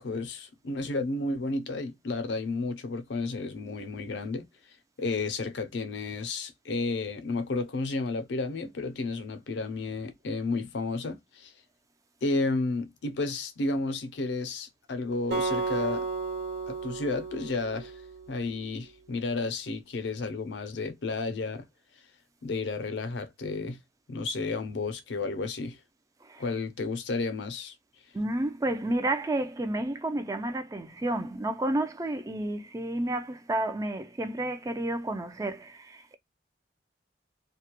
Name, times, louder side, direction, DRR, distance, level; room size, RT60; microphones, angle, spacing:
voice 1, 0.0-4.4 5.0-11.5 12.2-16.1 16.7-18.0 18.3-21.7 22.4-23.8 24.1-25.8 26.4-27.7, left 3 dB, 75° left, 0.5 m, -32 dB
Acoustic guitar, 15.3-18.6, right 4 dB, 85° right, 1.3 m, -33 dB
voice 2, 28.1-36.2, right 1 dB, 20° right, 0.3 m, -31 dB
2.3 x 2.1 x 2.9 m
head